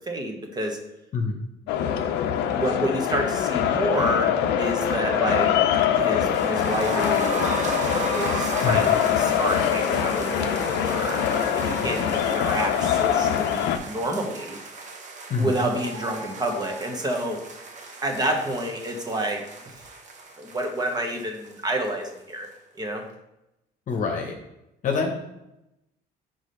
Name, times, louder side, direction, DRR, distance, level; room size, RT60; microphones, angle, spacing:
voice 1, 0.1-0.8 2.5-5.5 5.9-14.6 15.4-17.4 18.0-19.8 20.4-22.5 22.8-23.0, right 1 dB, 25° right, 3 dB, 1.0 m, -29 dB
sound 1, 1.7-13.8, left 9 dB, 85° left, 0.6 m, -23 dB
sound 2, 6.3-22.2 22.4-22.5 22.9-23.0, right 4 dB, 45° right, 1.0 m, -36 dB
voice 2, 23.9-24.4 24.8-25.1, left 4 dB, 50° left, 2 dB, 0.9 m, -26 dB
4.9 x 4.0 x 5.3 m, 0.89 s
cardioid pair, 110°, 17 cm